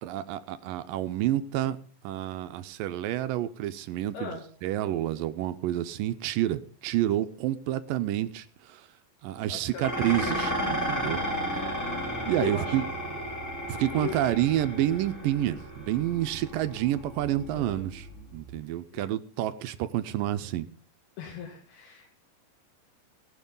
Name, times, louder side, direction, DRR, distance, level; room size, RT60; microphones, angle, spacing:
voice 1, 0.0-1.8 2.0-8.9 9.2-11.2 12.3-12.8 13.7-20.7, right 13 dB, 80° right, 11 dB, 2.2 m, -29 dB
voice 2, 9.5-10.1 12.4-12.7 13.1-13.2 13.9-14.2 17.6-17.8 18.9-19.1 21.2-22.1, left 6 dB, 85° left, -1 dB, 3.7 m, -38 dB
Dishes pots and pans, 9.8-18.6, equal, 5° left, 2.0 m, -34 dB
18.5 x 7.1 x 5.3 m, 0.42 s
omnidirectional pair, 4.3 m